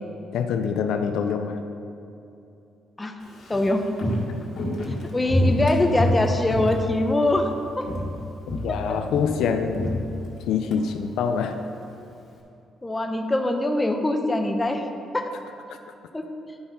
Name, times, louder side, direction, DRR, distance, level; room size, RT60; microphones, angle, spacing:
voice 1, 0.3-1.6 8.5-10.0 10.5-11.6 15.7-15.8, left 6 dB, 80° left, 6 dB, 0.5 m, -25 dB
Walk footsteps, 3.2-7.5 7.8-8.2 8.5-10.8 11.1-11.2, left 1 dB, 60° left, 1.6 m, -27 dB
voice 2, 3.5-3.8 5.1-7.9 8.9-9.0 12.8-14.8 15.1-15.3 16.1-16.2, left 1 dB, 15° left, 4 dB, 0.8 m, -23 dB
11.0 x 5.7 x 4.0 m, 2.7 s
cardioid pair, 90°, 0 cm